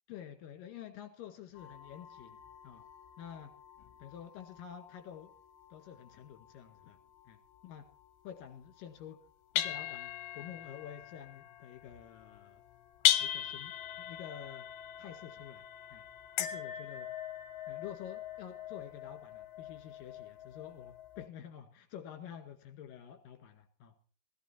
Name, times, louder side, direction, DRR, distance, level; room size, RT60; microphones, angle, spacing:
voice 1, 0.1-2.4 2.6-2.8 3.2-3.5 4.0-5.3 5.7-7.0 7.3-7.4 7.6-7.8 8.2-9.2 9.5-12.6 13.2-14.7 15.0-15.6 15.9-16.0 16.4-17.1 17.7-23.9, left 9 dB, 65° left, 6 dB, 3.3 m, -49 dB
sound 1, 1.5-9.1 9.6-21.3, left 12 dB, 80° left, 2.7 m, -39 dB
17.0 x 12.5 x 4.3 m, 0.40 s
omnidirectional pair, 4.5 m